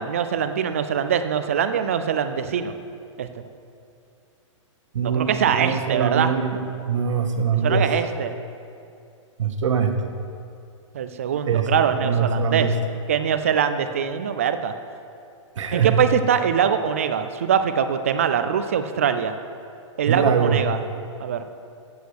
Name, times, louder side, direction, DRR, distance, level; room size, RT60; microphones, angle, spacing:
voice 1, 0.0-2.7 3.2-3.4 5.0-6.3 7.6-8.3 10.9-12.7 13.1-14.7 15.7-19.3 20.0-20.8 21.2-21.4, right 8 dB, 25° right, 9 dB, 0.3 m, -23 dB
voice 2, 4.9-6.6 6.9-7.9 9.4-10.1 11.5-12.7 15.6-16.0 20.1-20.6, right 6 dB, 70° right, 6 dB, 1.0 m, -22 dB
8.2 x 8.0 x 6.4 m, 2.5 s
hypercardioid pair, 180°, 16 cm